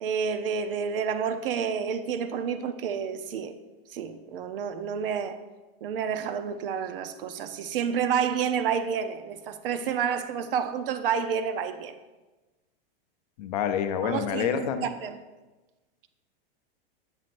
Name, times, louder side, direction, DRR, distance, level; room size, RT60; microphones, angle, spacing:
voice 1, 0.0-3.5 3.9-5.4 5.8-12.0 14.0-15.2, right 7 dB, 70° right, 0.6 m, -29 dB
voice 2, 13.4-14.8, left 8 dB, 45° left, 0.5 m, -27 dB
7.6 x 7.4 x 2.5 m
supercardioid pair, 170°, 29 cm